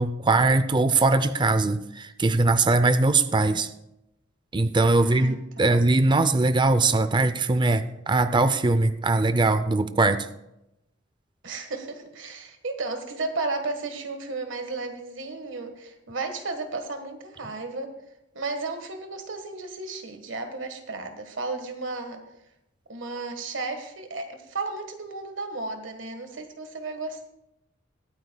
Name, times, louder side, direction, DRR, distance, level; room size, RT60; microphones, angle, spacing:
voice 1, 0.0-3.7 4.5-10.3, right 2 dB, 25° right, 12 dB, 0.5 m, -21 dB
voice 2, 4.9-5.7 11.4-17.9 18.3-22.2 22.9-27.3, right 3 dB, 75° right, 6 dB, 1.5 m, -34 dB
21.5 x 9.1 x 2.3 m, 0.87 s
head